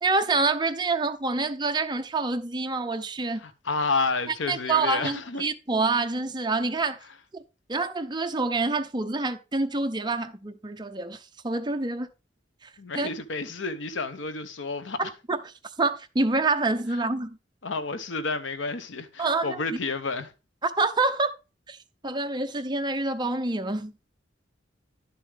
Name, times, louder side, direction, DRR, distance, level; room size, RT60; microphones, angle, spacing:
voice 1, 0.0-3.4 4.5-7.0 7.3-7.4 7.7-12.1 12.6-13.1 15.3-17.4 19.2-19.8 20.6-21.3 21.7-21.8 22.0-23.9, right 3 dB, 25° right, 0.7 m, -27 dB
voice 2, 3.4-5.4 12.8-15.1 17.6-20.3, left 3 dB, 85° left, 0.9 m, -30 dB
11.0 x 6.9 x 3.5 m
head